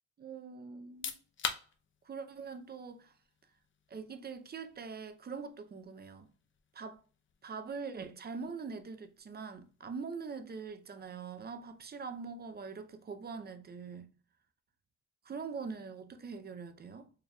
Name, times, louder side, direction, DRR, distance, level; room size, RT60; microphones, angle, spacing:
voice 1, 0.2-1.2 2.0-3.1 3.9-6.3 6.7-7.0 7.4-14.1 15.2-17.1, right 5 dB, 35° right, 0.6 m, -43 dB
sound 1, 0.8-13.4, left 6 dB, 40° left, 0.6 m, -48 dB
4.7 x 3.3 x 2.2 m
cardioid pair, 90°, 30 cm